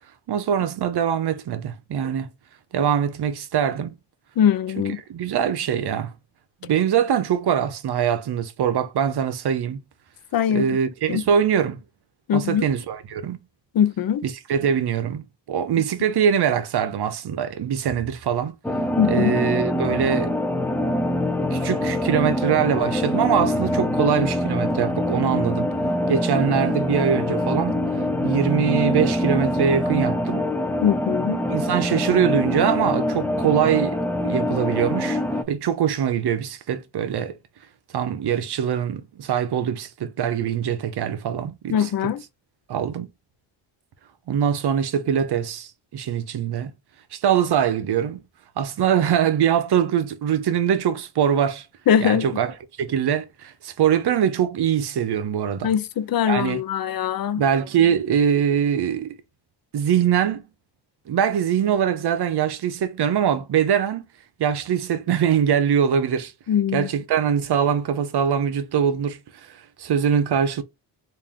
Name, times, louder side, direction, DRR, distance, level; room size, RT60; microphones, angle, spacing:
voice 1, 0.3-2.3 2.7-3.9 4.8-6.1 6.6-9.8 10.5-11.8 12.3-13.4 14.2-18.5 19.1-20.3 21.5-25.7 26.1-27.8 28.2-30.5 31.5-35.2 35.5-37.4 37.9-42.1 42.7-43.1 44.3-46.7 47.1-48.2 48.6-51.7 52.0-55.7 56.3-56.6 57.4-59.1 59.7-60.4 61.1-64.0 64.4-66.3 66.7-69.2 69.5-70.6, right 8 dB, 65° right, 0.8 m, -23 dB
voice 2, 4.4-5.0 10.3-10.8 11.1-11.2 12.3-12.6 13.7-14.2 19.0-19.4 30.8-31.4 41.7-42.2 51.9-52.3 55.6-57.4 66.5-66.9, left 9 dB, 55° left, 0.6 m, -21 dB
sound 1, 18.6-35.4, left 1 dB, 5° left, 0.5 m, -24 dB
3.3 x 2.6 x 3.6 m
cardioid pair, 80°, 43 cm